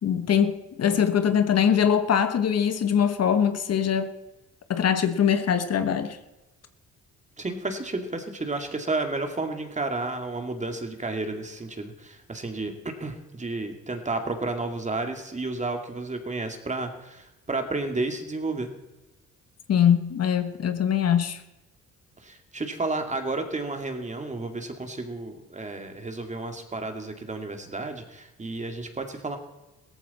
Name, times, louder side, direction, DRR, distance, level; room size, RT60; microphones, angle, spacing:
voice 1, 0.0-4.1 4.7-6.2 19.7-21.4, left 8 dB, 55° left, 1.2 m, -22 dB
voice 2, 7.4-18.7 22.2-29.4, right 3 dB, 25° right, 2.3 m, -32 dB
17.0 x 14.5 x 4.2 m
cardioid pair, 90°, 30 cm